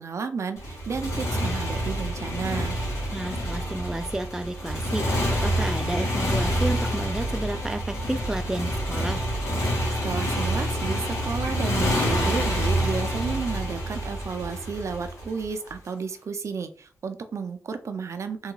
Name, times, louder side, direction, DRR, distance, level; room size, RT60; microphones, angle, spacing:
voice 1, 0.0-2.8 10.0-18.5, right 5 dB, 60° right, 8 dB, 0.6 m, -32 dB
Motorcycle, 0.6-15.7, equal, 80° left, 1.9 m, -27 dB
voice 2, 3.1-9.3, right 1 dB, 10° right, 7 dB, 0.3 m, -31 dB
3.6 x 3.1 x 3.2 m, 0.40 s
wide cardioid pair, 100°, 6 cm